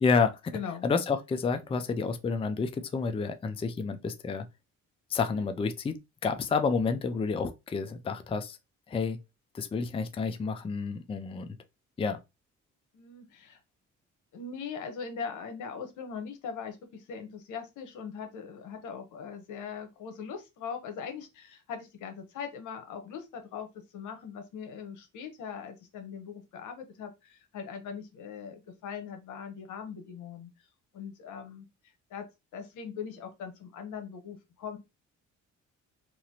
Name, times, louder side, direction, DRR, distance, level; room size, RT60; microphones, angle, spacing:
voice 1, 0.0-0.6 0.8-4.5 5.1-6.0 6.2-8.6 8.9-9.2 9.5-11.5 12.0-12.2, left 5 dB, 20° left, 0.4 m, -29 dB
voice 2, 0.5-0.8 5.2-5.5 12.9-13.6 14.3-30.7 30.9-31.7 32.1-32.2 32.5-34.8, left 6 dB, 80° left, 0.9 m, -41 dB
3.0 x 2.5 x 2.8 m
cardioid pair, 90°, 30 cm